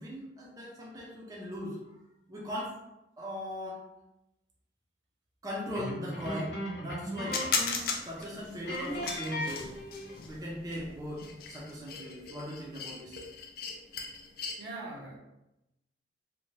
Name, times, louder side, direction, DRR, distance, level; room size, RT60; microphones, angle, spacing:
voice 1, 0.0-1.8 2.3-2.7 3.2-3.8 5.4-7.4 8.0-9.7 10.3-13.2, equal, 20° right, -4 dB, 0.4 m, -39 dB
sound 1, 5.7-8.3 8.6-10.3, equal, 65° left, 0.8 m, -37 dB
sound 2, 7.3-14.5, left 5 dB, 50° left, 0.4 m, -37 dB
voice 2, 14.6-15.2, right 2 dB, 80° right, -3 dB, 0.8 m, -41 dB
2.6 x 2.1 x 3.0 m, 0.89 s
head